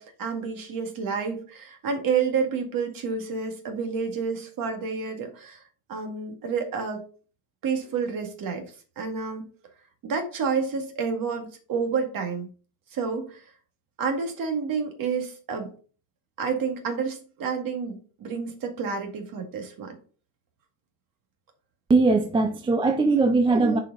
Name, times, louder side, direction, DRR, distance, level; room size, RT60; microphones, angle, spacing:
voice 1, 0.0-5.6 5.9-7.0 7.6-8.6 9.0-9.4 10.0-12.5 12.9-13.4 14.0-15.7 16.4-19.9, right 5 dB, 45° right, 2.1 m, -29 dB
voice 2, 21.9-23.8, right 3 dB, 10° right, 0.5 m, -20 dB
7.1 x 4.7 x 3.9 m
supercardioid pair, 120°, 47 cm